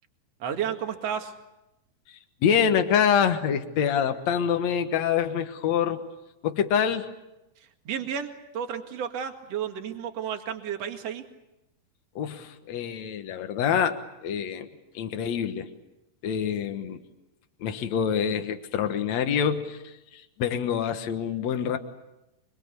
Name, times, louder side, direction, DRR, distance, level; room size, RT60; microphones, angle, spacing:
voice 1, 0.4-1.3 7.8-11.2, right 8 dB, 45° right, 5 dB, 2.4 m, -32 dB
voice 2, 2.1-6.0 6.4-7.1 12.1-14.0 14.2-14.7 14.9-15.7 16.2-17.0 17.6-21.8, left 8 dB, 80° left, 7 dB, 1.5 m, -26 dB
25.5 x 24.5 x 8.2 m, 0.94 s
omnidirectional pair, 5.3 m